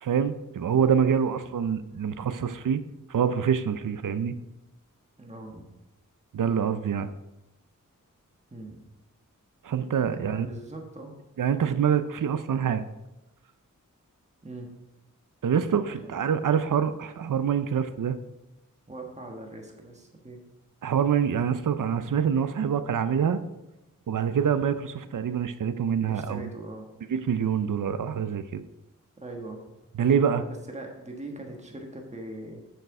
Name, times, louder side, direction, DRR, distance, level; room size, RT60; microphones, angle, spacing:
voice 1, 0.0-2.8 3.1-4.3 6.3-7.1 9.6-10.5 11.4-12.8 15.4-18.2 20.8-23.4 24.1-26.4 27.1-28.6 30.0-30.4, right 7 dB, 70° right, 12 dB, 0.6 m, -25 dB
voice 2, 0.7-1.2 5.2-5.6 8.5-8.8 10.3-11.1 14.4-14.7 15.8-16.3 18.9-20.4 26.1-26.9 29.2-29.6 30.5-32.6, right 2 dB, 20° right, 1 dB, 1.4 m, -41 dB
6.7 x 6.6 x 4.8 m, 0.95 s
wide cardioid pair, 60°, 33 cm